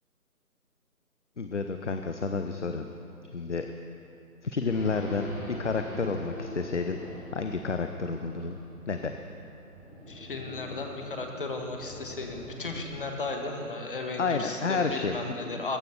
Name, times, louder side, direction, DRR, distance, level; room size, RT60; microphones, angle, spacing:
voice 1, 1.4-2.9 3.3-3.7 4.4-5.3 5.6-7.0 7.3-8.6 8.9-9.1 14.2-15.6, left 4 dB, 50° left, 6 dB, 0.8 m, -30 dB
Race car auto racing / Idling / Accelerating revving vroom, 4.7-13.3, left 1 dB, 10° left, 2.7 m, -43 dB
voice 2, 10.1-15.8, left 3 dB, 35° left, 3 dB, 1.6 m, -35 dB
14.5 x 11.0 x 6.9 m, 2.8 s
figure-of-eight pair, 155°, 45 cm